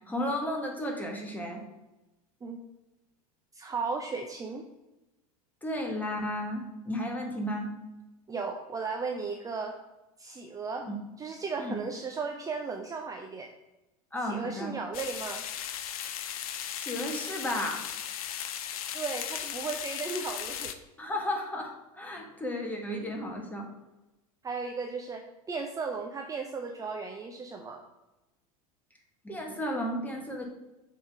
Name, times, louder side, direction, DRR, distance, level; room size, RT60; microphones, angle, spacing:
voice 1, 0.1-1.6 5.6-7.7 10.8-11.0 11.6-11.8 14.1-14.7 16.8-17.8 21.0-23.7 29.2-30.5, left 1 dB, 10° left, 0 dB, 1.7 m, -33 dB
voice 2, 3.5-4.6 8.3-9.8 10.2-10.9 11.2-13.5 14.2-15.4 18.9-20.7 24.4-27.8, right 4 dB, 20° right, 3 dB, 0.7 m, -35 dB
sound 1, 14.9-20.7, left 10 dB, 65° left, 0.6 m, -37 dB
7.0 x 3.7 x 5.0 m, 1.0 s
hypercardioid pair, 85°, 19 cm